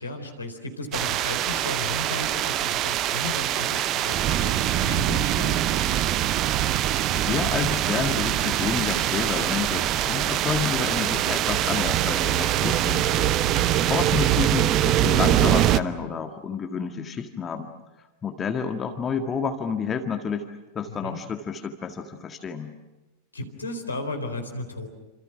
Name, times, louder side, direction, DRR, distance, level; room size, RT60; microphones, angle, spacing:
voice 1, 0.0-5.7 13.6-13.9 20.9-21.2 23.3-24.9, left 2 dB, 75° left, 5 dB, 4.3 m, -35 dB
Arkham Rain, 0.9-15.8, right 12 dB, 35° right, 0.8 m, -23 dB
voice 2, 7.1-13.4 13.9-17.7 18.2-20.5 20.8-22.7, left 6 dB, 20° left, 5 dB, 1.8 m, -29 dB
28.5 x 27.5 x 6.1 m, 1.1 s
figure-of-eight pair, 90°, 0 cm